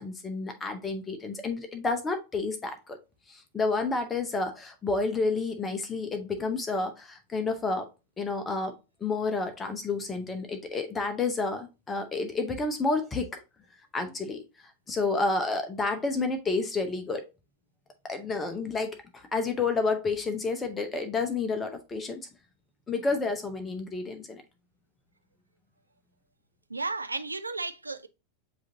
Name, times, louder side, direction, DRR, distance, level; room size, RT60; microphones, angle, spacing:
voice 1, 0.0-3.0 3.3-7.9 8.2-8.7 9.0-13.4 13.9-17.2 18.1-22.2 22.9-24.4, left 3 dB, 15° left, 0.7 m, -30 dB
voice 2, 26.7-28.1, right 3 dB, 80° right, 0.4 m, -33 dB
7.5 x 2.6 x 2.7 m
figure-of-eight pair, 90°, 0 cm